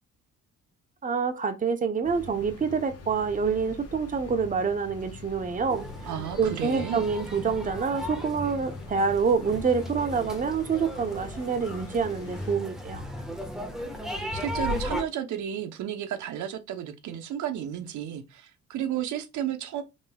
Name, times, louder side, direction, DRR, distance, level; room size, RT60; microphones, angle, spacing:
voice 1, 1.0-5.9 6.4-13.1, right 5 dB, 25° right, 0.8 m, -27 dB
sound 1, 2.0-12.6, left 3 dB, 50° left, 1.4 m, -44 dB
sound 2, 5.7-15.0, left 1 dB, ahead, 1.3 m, -36 dB
voice 2, 6.1-7.0 14.1-19.8, right 10 dB, 75° right, 0.8 m, -33 dB
5.2 x 3.5 x 2.3 m
cardioid pair, 90°, 30 cm